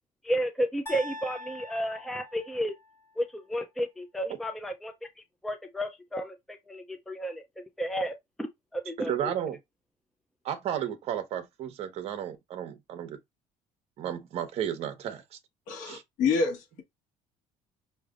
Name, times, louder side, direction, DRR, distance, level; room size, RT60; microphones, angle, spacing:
voice 1, 0.2-2.7 3.2-4.9 5.4-7.4 7.8-8.5 8.7-9.3, equal, ahead, 0.5 m, -32 dB
sound 1, 0.9-3.0, left 2 dB, 20° left, 1.8 m, -43 dB
voice 2, 9.1-9.6 10.4-13.2 14.0-15.4 15.8-16.0, right 10 dB, 50° right, 1.1 m, -33 dB
voice 3, 15.7-16.8, left 5 dB, 75° left, 1.4 m, -28 dB
5.9 x 3.3 x 2.5 m
cardioid pair, 155°, 13 cm